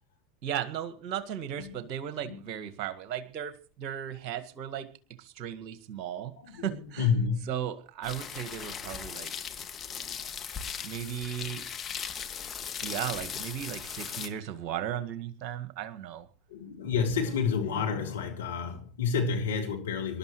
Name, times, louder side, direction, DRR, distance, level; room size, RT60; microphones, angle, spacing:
voice 1, 0.4-4.9 5.2-7.1 7.5-9.3 10.8-11.6 12.8-16.3, right 10 dB, 45° right, 1.8 m, -36 dB
voice 2, 6.4-7.4 12.2-12.4 16.5-20.2, left 6 dB, 70° left, 3.8 m, -30 dB
sound 1, 8.0-14.3, left 7 dB, 30° left, 1.9 m, -38 dB
26.0 x 12.0 x 3.1 m
figure-of-eight pair, 80°, 0 cm